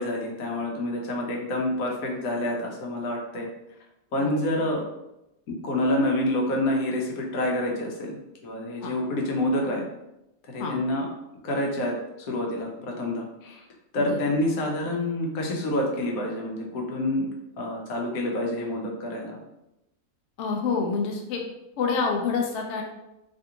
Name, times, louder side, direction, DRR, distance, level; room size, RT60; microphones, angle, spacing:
voice 1, 0.0-3.5 4.1-4.8 5.6-8.2 8.4-9.8 10.5-11.1 11.4-13.6 13.9-17.2 17.6-19.4, left 1 dB, 90° left, 0 dB, 1.2 m, -27 dB
voice 2, 4.2-4.5 8.8-8.9 10.6-10.8 14.0-14.2 20.4-21.4 21.8-22.8, left 5 dB, 65° left, 1 dB, 0.8 m, -27 dB
3.4 x 2.5 x 2.8 m, 0.90 s
omnidirectional pair, 1.4 m